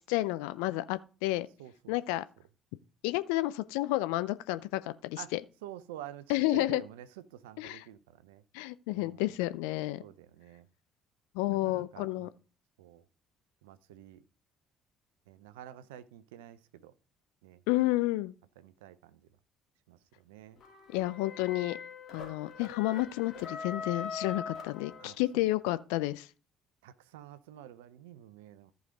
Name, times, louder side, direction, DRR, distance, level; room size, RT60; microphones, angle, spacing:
voice 1, 0.1-1.5 1.9-2.2 3.0-5.4 6.3-6.8 7.6-7.8 8.5-10.0 11.3-12.3 17.7-18.3 20.9-21.8 22.1-26.3, left 18 dB, 75° left, 0.4 m, -31 dB
voice 2, 1.6-2.2 5.2-5.3 5.6-8.4 8.9-9.2 10.0-10.7 11.6-12.3 12.8-13.0 13.6-14.2 15.3-16.9 17.4-17.6 18.6-19.3 19.9-20.6 25.0-25.5 26.8-28.7, right 12 dB, 75° right, 0.6 m, -49 dB
sound 1, 20.6-25.4, left 5 dB, 50° left, 3.0 m, -42 dB
14.0 x 5.2 x 3.7 m
hypercardioid pair, 50°, 0 cm